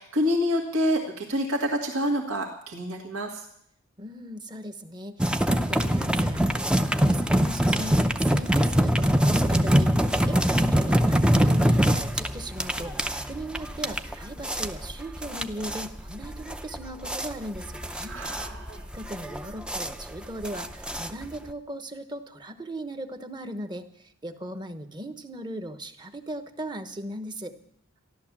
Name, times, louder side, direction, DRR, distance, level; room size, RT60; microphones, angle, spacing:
voice 1, 0.0-3.4 18.1-18.8, equal, 80° right, -1 dB, 1.9 m, -27 dB
voice 2, 4.0-18.2 18.9-23.9 24.2-27.5, right 1 dB, 20° right, 9 dB, 1.0 m, -38 dB
sound 1, 5.2-21.5, equal, 5° right, 0.5 m, -24 dB
14.0 x 11.5 x 7.3 m, 0.69 s
head